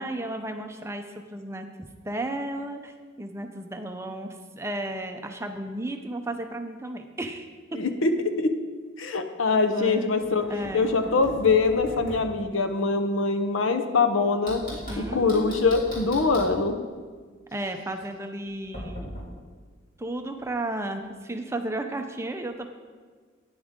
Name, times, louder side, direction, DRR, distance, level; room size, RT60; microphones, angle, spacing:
voice 1, 0.0-7.5 9.7-10.1 10.5-10.9 14.9-15.6 17.5-19.1 20.0-22.7, right 1 dB, 15° right, 5 dB, 0.6 m, -34 dB
voice 2, 7.7-8.6 9.0-10.4 10.7-16.8, left 4 dB, 75° left, 7 dB, 0.8 m, -23 dB
Knock, 10.2-12.3 14.5-16.6 18.7-19.3, equal, 40° left, 3.4 m, -39 dB
9.8 x 9.7 x 3.7 m, 1.5 s
head